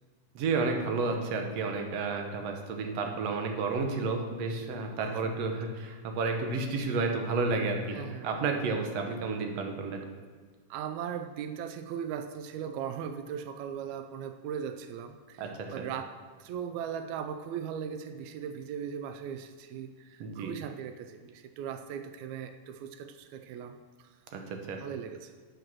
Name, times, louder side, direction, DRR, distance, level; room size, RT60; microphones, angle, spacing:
voice 1, 0.4-8.0 8.2-10.0 15.4-15.5 15.8-15.9 20.2-20.5 24.3-24.8, right 4 dB, 65° right, 3 dB, 1.8 m, -31 dB
voice 2, 5.0-5.3 7.9-8.3 10.7-16.1 16.4-24.1 24.8-25.3, right 8 dB, 90° right, 8 dB, 1.6 m, -38 dB
8.2 x 8.0 x 6.1 m, 1.5 s
omnidirectional pair, 3.9 m